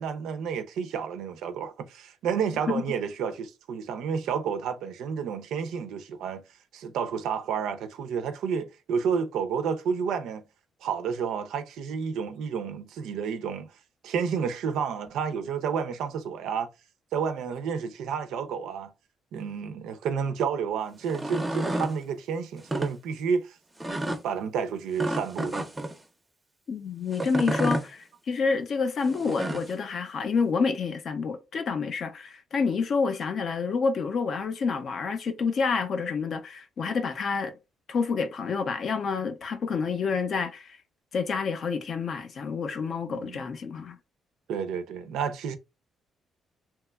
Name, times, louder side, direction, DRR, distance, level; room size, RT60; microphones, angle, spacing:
voice 1, 0.0-6.4 6.7-10.4 10.8-13.7 14.0-16.7 17.1-18.9 19.3-23.5 24.2-25.7 43.1-43.4 44.5-45.6, right 6 dB, 85° right, 0.4 m, -30 dB
sound 1, 21.0-21.9 22.6-22.9 23.8-24.2 25.0-25.9 27.1-27.9 29.1-29.7, right 1 dB, 15° right, 0.5 m, -30 dB
voice 2, 26.7-37.5 37.9-40.8 41.1-44.0, left 5 dB, 55° left, 0.5 m, -28 dB
2.8 x 2.2 x 2.2 m
cardioid pair, 90°, 0 cm